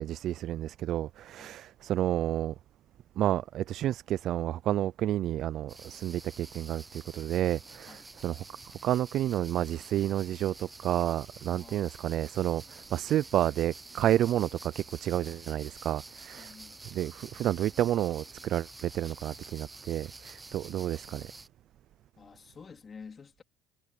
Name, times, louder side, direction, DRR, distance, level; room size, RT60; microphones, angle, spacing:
voice 1, 0.0-2.5 3.2-8.4 8.8-16.5 16.9-21.3, right 12 dB, 65° right, 0.4 m, -30 dB
sound 1, 5.7-21.5, right 3 dB, 20° right, 0.7 m, -49 dB
voice 2, 11.5-11.9 16.3-16.8 22.2-23.4, left 5 dB, 35° left, 3.2 m, -50 dB
supercardioid pair, 70°, 0 cm